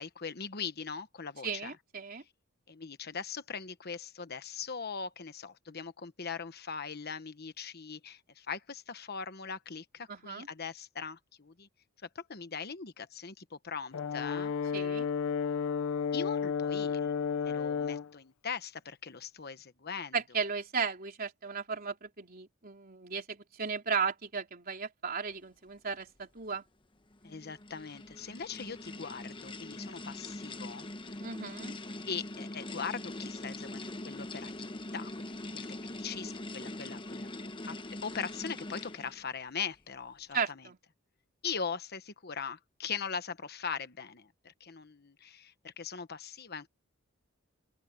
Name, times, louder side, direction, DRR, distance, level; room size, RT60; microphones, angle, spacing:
voice 1, 0.0-1.7 2.7-11.7 12.1-15.0 16.1-20.2 27.2-31.3 32.1-35.3 35.5-37.3 37.6-37.8 38.0-40.6 41.4-46.7, left 6 dB, 50° left, 1.2 m, -41 dB
voice 2, 1.4-2.2 10.1-10.5 14.7-15.1 20.1-26.6 31.2-31.8 40.3-40.8, right 5 dB, 45° right, 3.7 m, -35 dB
Brass instrument, 13.9-18.1, left 6 dB, 70° left, 0.5 m, -32 dB
sound 1, 27.1-39.3, left 1 dB, 25° left, 1.1 m, -42 dB
open air
head